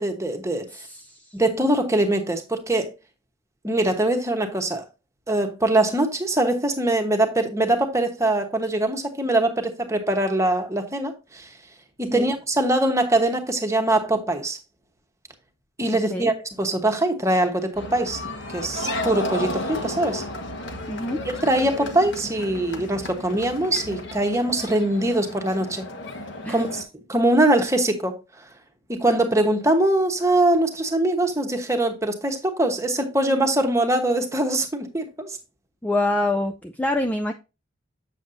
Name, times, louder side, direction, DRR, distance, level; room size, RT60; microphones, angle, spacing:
voice 1, 0.0-0.7 1.3-2.9 3.6-4.8 5.3-11.5 12.0-14.6 15.8-18.2 18.5-20.2 21.2-25.8 26.5-26.8 27.1-28.2 28.9-35.4, right 1 dB, 15° right, 1.1 m, -22 dB
voice 2, 0.7-1.3 12.1-12.3 16.1-16.3 20.9-21.2 26.4-26.6 35.8-37.3, left 2 dB, 5° left, 0.4 m, -26 dB
sound 1, 17.7-26.8, left 1 dB, 55° left, 1.3 m, -33 dB
7.9 x 7.2 x 2.6 m
head